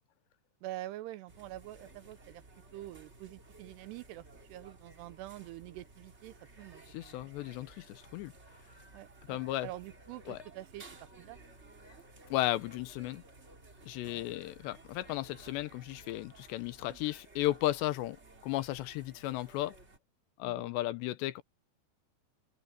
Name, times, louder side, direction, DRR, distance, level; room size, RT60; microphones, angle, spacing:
voice 1, 0.6-2.4 2.7-7.6 8.9-10.8 11.2-11.4 14.0-14.2 20.4-20.7, right 15 dB, 80° right, 2.7 m, -46 dB
sound 1, 1.3-20.0, right 2 dB, 30° right, 1.2 m, -56 dB
voice 2, 6.9-8.3 9.3-9.7 10.3-10.4 12.3-13.2 13.8-18.2 18.4-19.8 20.4-21.4, left 16 dB, 85° left, 3.0 m, -34 dB
open air
omnidirectional pair, 5.1 m